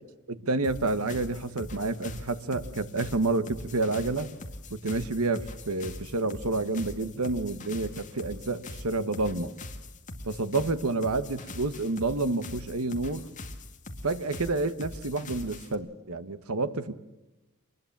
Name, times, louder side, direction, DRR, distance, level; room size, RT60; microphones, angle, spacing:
voice 1, 0.3-4.3 4.7-9.5 10.2-13.3 14.0-16.9, right 3 dB, 80° right, 12 dB, 1.3 m, -29 dB
sound 1, 0.6-15.7, left 2 dB, 35° left, 2.0 m, -42 dB
24.0 x 20.5 x 7.4 m, 1.0 s
head